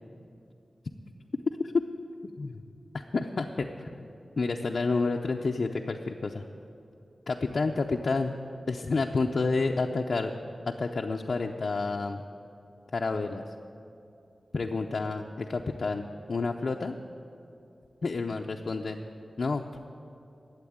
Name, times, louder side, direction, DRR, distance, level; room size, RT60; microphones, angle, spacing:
voice 1, 3.1-4.1 4.4-6.4 7.3-8.3 8.7-10.3 10.7-12.2 12.9-13.4 14.5-17.0 18.0-19.0 19.4-19.8, left 3 dB, 60° left, 1 dB, 0.6 m, -29 dB
12.0 x 8.2 x 9.5 m, 2.6 s
wide cardioid pair, 90°, 0 cm